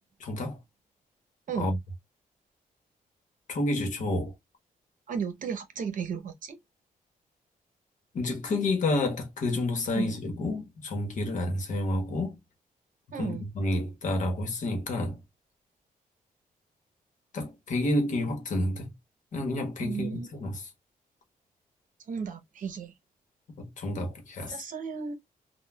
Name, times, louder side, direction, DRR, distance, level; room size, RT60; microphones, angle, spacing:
voice 1, 0.2-0.6 1.5-1.8 3.5-4.3 8.1-12.4 13.2-15.2 17.3-18.9 19.3-20.7 23.6-24.6, left 2 dB, 55° left, 1.1 m, -30 dB
voice 2, 5.1-6.6 9.9-10.2 13.1-13.4 19.8-20.3 22.1-22.9 24.4-25.1, right 6 dB, 60° right, 0.7 m, -34 dB
3.7 x 2.2 x 2.2 m
wide cardioid pair, 175°, 15 cm